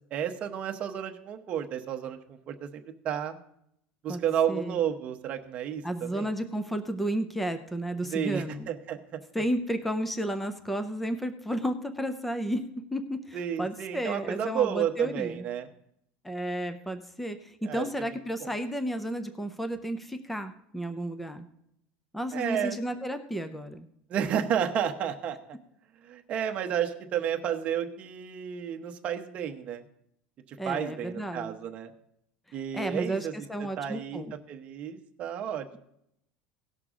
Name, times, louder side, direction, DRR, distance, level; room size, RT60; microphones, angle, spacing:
voice 1, 0.1-2.2 2.5-3.4 4.0-6.3 8.0-9.2 13.3-15.7 17.6-17.9 18.4-18.5 22.3-22.8 24.1-25.4 26.0-29.8 30.6-31.9 32.5-33.3 33.8-34.2 34.5-35.8, right 9 dB, 30° right, 5 dB, 0.9 m, -31 dB
voice 2, 4.5-4.8 5.8-8.7 9.3-12.6 12.9-15.5 16.2-21.5 22.1-23.9 30.6-31.5 32.7-34.4, right 1 dB, 5° left, 9 dB, 0.5 m, -32 dB
17.5 x 6.7 x 3.7 m, 0.75 s
cardioid pair, 170°, 4 cm